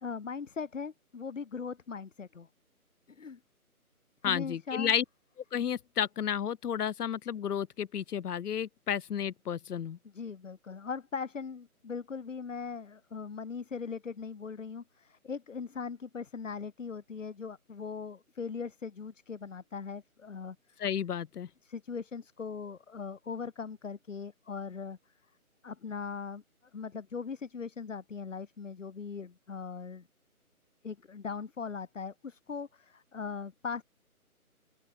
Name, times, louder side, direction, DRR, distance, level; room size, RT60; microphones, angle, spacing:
voice 1, 0.0-2.5 3.1-3.4 4.2-4.9 10.0-20.8 21.6-25.0 25.6-26.4 26.7-30.1 30.8-33.8, left 5 dB, 55° left, 1.2 m, -40 dB
voice 2, 4.2-5.0 5.5-10.0 20.8-21.5, left 8 dB, 85° left, 0.7 m, -32 dB
open air
figure-of-eight pair, 170°, 45 cm